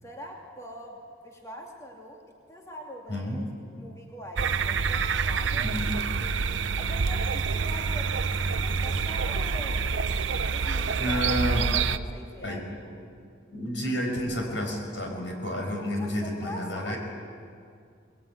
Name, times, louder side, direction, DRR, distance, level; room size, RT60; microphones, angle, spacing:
voice 1, 0.0-2.2 2.5-3.5 3.7-10.0 10.5-11.4 11.7-12.6 16.0-17.0, equal, 15° left, -1 dB, 2.6 m, -43 dB
voice 2, 3.1-3.4 5.6-5.9 11.0-11.7 12.4-12.7 13.5-17.0, equal, 80° left, 2 dB, 6.2 m, -30 dB
sound 1, 4.4-12.0, right 5 dB, 85° right, 0.7 m, -27 dB
23.5 x 21.0 x 9.6 m, 2.3 s
head